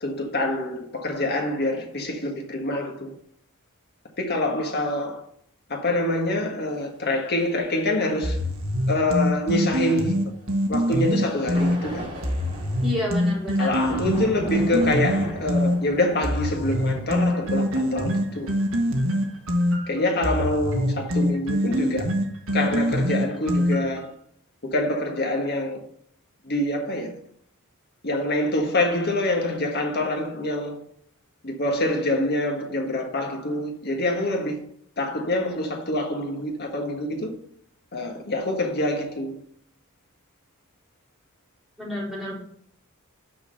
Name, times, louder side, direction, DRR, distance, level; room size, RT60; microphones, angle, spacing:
voice 1, 0.0-3.1 4.2-5.2 5.7-8.4 8.9-10.2 10.7-12.0 13.6-18.6 19.9-22.2 22.5-24.1 24.6-25.9 26.4-27.1 28.0-30.8 31.4-34.6 35.0-37.3 37.9-39.4, left 1 dB, 45° left, 1.6 m, -26 dB
sound 1, 7.1-7.2 11.0-19.3, equal, 25° right, 3.6 m, -37 dB
sound 2, 8.2-11.8 12.2-15.8 16.2-24.0, equal, 65° right, 1.4 m, -24 dB
voice 2, 12.8-13.7 41.8-42.4, left 1 dB, ahead, 4.2 m, -30 dB
6.4 x 5.8 x 6.4 m
head